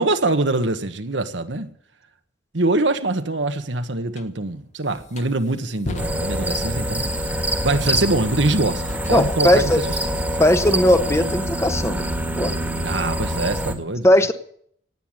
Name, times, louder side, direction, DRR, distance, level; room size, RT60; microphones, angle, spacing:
voice 1, 0.0-1.7 2.5-7.1 7.6-10.4 12.8-14.3, right 2 dB, 85° right, 1.5 m, -24 dB
sound 1, 4.1-4.3 4.9-9.2, left 1 dB, 40° left, 1.2 m, -36 dB
sound 2, 6.0-13.7, right 1 dB, 10° right, 1.7 m, -25 dB
voice 2, 9.1-9.8 10.4-12.0 12.4-12.5 14.0-14.3, left 1 dB, 15° left, 1.1 m, -17 dB
18.0 x 8.2 x 8.9 m
head